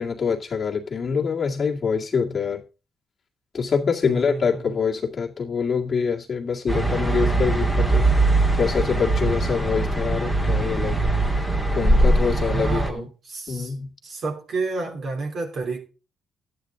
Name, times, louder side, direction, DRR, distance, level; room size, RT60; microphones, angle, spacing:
voice 1, 0.0-2.6 3.5-8.1 8.5-11.0 11.7-13.1 13.5-13.9, left 6 dB, 40° left, 2.1 m, -25 dB
voice 2, 4.0-4.8 12.4-13.7 14.0-15.8, right 3 dB, 55° right, 3.1 m, -30 dB
sound 1, 6.7-12.9, right 2 dB, 10° right, 1.9 m, -21 dB
11.5 x 9.2 x 3.7 m
cardioid pair, 90°, 0 cm